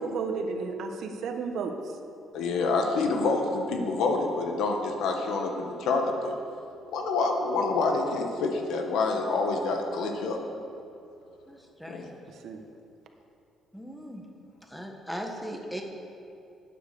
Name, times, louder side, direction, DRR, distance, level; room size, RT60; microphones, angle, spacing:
voice 1, 0.0-2.0 12.3-12.6, right 4 dB, 65° right, 5 dB, 1.3 m, -33 dB
voice 2, 2.3-6.3 6.9-10.4 11.8-12.1, left 3 dB, 80° left, 3 dB, 1.6 m, -27 dB
voice 3, 11.5-12.1 13.7-14.2 14.7-15.8, equal, 5° left, 2 dB, 1.5 m, -38 dB
12.0 x 9.3 x 6.9 m, 2.6 s
cardioid pair, 130°, 0 cm